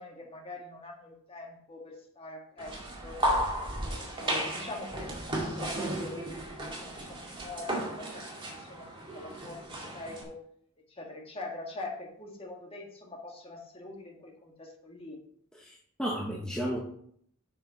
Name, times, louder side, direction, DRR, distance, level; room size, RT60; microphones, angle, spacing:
voice 1, 0.0-3.2 3.6-5.1 5.4-10.4 10.9-15.2, left 2 dB, 25° left, 0 dB, 2.0 m, -44 dB
sound 1, 2.6-10.2, right 1 dB, 25° right, 2.0 m, -34 dB
voice 2, 15.5-16.8, equal, 5° left, -3 dB, 1.1 m, -33 dB
7.9 x 6.3 x 4.5 m, 0.65 s
head